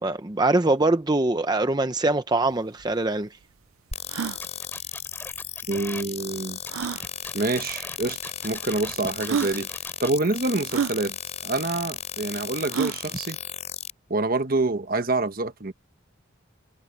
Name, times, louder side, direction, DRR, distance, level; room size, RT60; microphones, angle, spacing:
voice 1, 0.0-3.3, right 2 dB, 20° right, 0.7 m, -23 dB
sound 1, 2.5-2.6 2.8-2.9 3.4-3.5 4.0-4.4 5.7-5.8 6.7-7.0 8.0-8.1 8.8-8.9 9.3-9.6 10.7-11.0 12.7-13.0, right 7 dB, 85° right, 0.4 m, -28 dB
sound 2, 3.9-13.9, left 8 dB, 35° left, 7.6 m, -36 dB
sound 3, 4.4-6.0 6.6-10.1, left 2 dB, 10° left, 3.2 m, -41 dB
voice 2, 5.7-6.6 7.3-8.2 8.4-9.7 10.0-11.2 11.4-13.4 14.1-15.7, right 2 dB, 45° right, 1.2 m, -26 dB
head